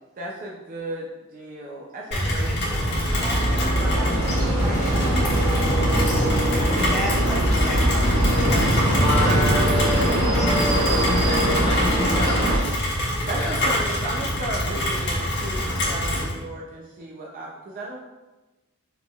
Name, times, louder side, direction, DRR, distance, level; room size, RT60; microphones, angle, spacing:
voice 1, 0.2-3.0 12.9-18.0, right 1 dB, 40° right, -3 dB, 0.5 m, -35 dB
Rain, 2.1-16.3, equal, 55° left, 1.3 m, -24 dB
voice 2, 2.1-8.2 8.5-8.8 9.2-9.3 10.3-10.5, right 1 dB, ahead, -6 dB, 1.0 m, -35 dB
sound 1, 3.1-12.6, right 1 dB, 85° right, 1.2 m, -23 dB
voice 3, 8.7-12.6 13.2-13.7, equal, 25° left, -5 dB, 1.0 m, -29 dB
5.8 x 3.7 x 2.4 m, 1.1 s
head